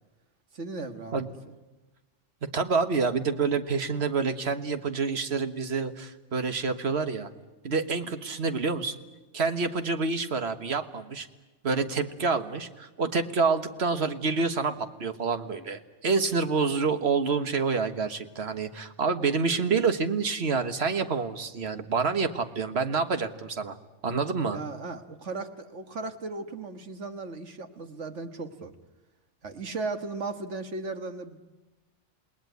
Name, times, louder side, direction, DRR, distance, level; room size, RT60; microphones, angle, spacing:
voice 1, 0.5-1.3 24.5-28.7 29.4-31.4, right 3 dB, 85° right, 8 dB, 2.0 m, -36 dB
voice 2, 2.4-7.3 7.6-8.9 9.3-11.3 11.6-23.8 24.0-24.6, right 4 dB, 60° right, 10 dB, 1.7 m, -27 dB
28.0 x 19.5 x 9.4 m, 1.1 s
omnidirectional pair, 1.2 m